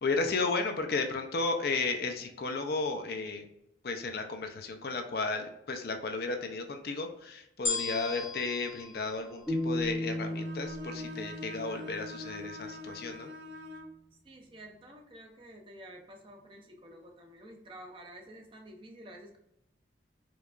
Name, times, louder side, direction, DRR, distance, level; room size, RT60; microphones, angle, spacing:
voice 1, 0.0-3.4 3.8-13.3, left 3 dB, 55° left, 5 dB, 0.5 m, -33 dB
sound 1, 7.6-10.0 10.7-10.8, left 4 dB, 90° left, 1.1 m, -37 dB
sound 2, 9.5-12.6, left 1 dB, 10° left, 0.8 m, -36 dB
Bowed string instrument, 10.2-14.0, left 2 dB, 75° right, 0.5 m, -44 dB
voice 2, 14.2-19.4, right 1 dB, 30° right, 2 dB, 0.6 m, -50 dB
4.5 x 2.4 x 2.4 m, 0.81 s
head